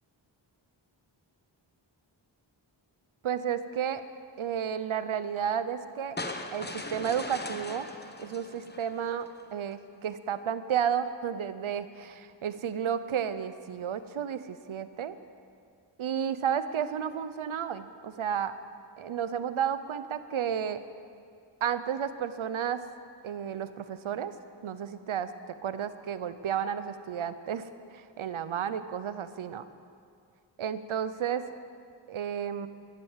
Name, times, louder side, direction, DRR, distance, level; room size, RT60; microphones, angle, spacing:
voice 1, 3.2-4.0 4.4-6.2 6.5-7.9 8.2-15.2 16.0-18.6 19.0-20.8 21.6-22.8 23.2-24.3 24.6-25.3 25.6-29.7 30.6-31.4 32.1-32.7, right 8 dB, 90° right, 13 dB, 0.8 m, -32 dB
sound 1, 6.2-9.4, left 2 dB, 20° left, 1.1 m, -40 dB
14.5 x 11.0 x 7.4 m, 2.3 s
cardioid pair, 50°, 47 cm